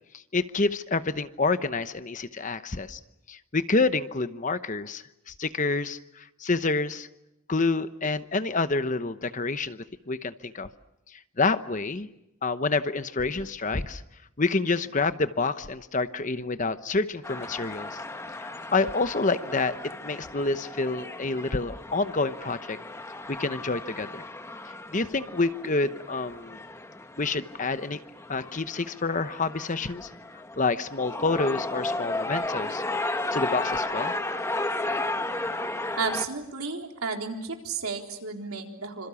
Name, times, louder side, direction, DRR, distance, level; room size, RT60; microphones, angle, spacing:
voice 1, 0.3-3.0 3.3-7.1 7.5-10.7 11.4-12.1 12.4-14.0 14.4-18.0 18.4-19.7 20.0-22.8 23.4-24.3 24.9-26.6 27.2-28.0 28.3-30.1 30.6-32.8 33.3-34.1, left 3 dB, 35° left, 11 dB, 1.0 m, -28 dB
sound 1, 17.2-36.3, left 2 dB, 15° left, 1.2 m, -34 dB
voice 2, 36.0-39.1, right 4 dB, 85° right, 2 dB, 3.9 m, -32 dB
27.5 x 26.5 x 7.1 m, 0.87 s
head